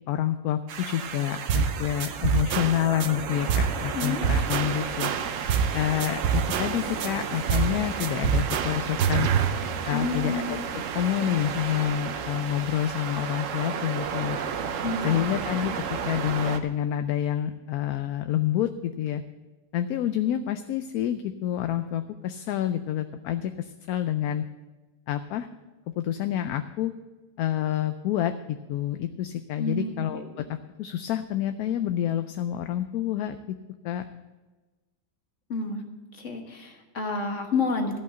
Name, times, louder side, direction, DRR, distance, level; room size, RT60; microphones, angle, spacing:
voice 1, 0.1-5.1 5.7-9.3 9.9-14.4 15.0-19.2 19.7-24.4 25.1-25.5 25.9-26.9 27.4-33.4 33.8-34.1, left 11 dB, 70° left, 10 dB, 1.0 m, -28 dB
sound 1, 0.7-16.6, right 7 dB, 60° right, 1.0 m, -33 dB
sound 2, 1.5-1.7 2.0-3.1 3.5-3.7 4.0-5.7 6.0-7.1 7.5-7.7 8.0-9.5, right 7 dB, 80° right, 1.3 m, -25 dB
voice 2, 9.9-10.6 14.8-15.2 15.6-15.7 29.6-30.2 35.5-35.8 36.1-38.0, left 3 dB, 50° left, 3 dB, 1.8 m, -30 dB
14.0 x 5.6 x 7.7 m, 1.2 s
omnidirectional pair, 1.8 m